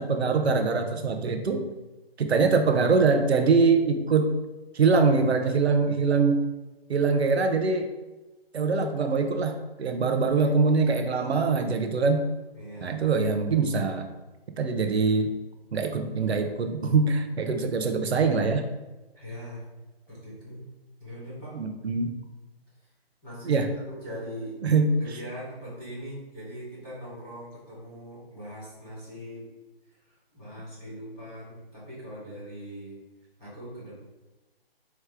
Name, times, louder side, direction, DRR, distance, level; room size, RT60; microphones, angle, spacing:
voice 1, 0.0-1.6 2.2-4.3 4.7-6.5 6.9-7.9 8.5-12.3 12.8-14.1 14.6-15.3 15.7-18.7 21.5-22.1 23.4-23.7 24.6-24.9, right 4 dB, 85° right, 5 dB, 0.7 m, -23 dB
voice 2, 12.5-13.0 19.1-19.6 20.1-20.6 21.0-21.6 23.2-24.6 25.0-29.4 30.0-33.0 33.4-34.0, equal, 5° left, -17 dB, 0.9 m, -41 dB
4.7 x 3.1 x 3.4 m, 1.1 s
hypercardioid pair, 175°, 31 cm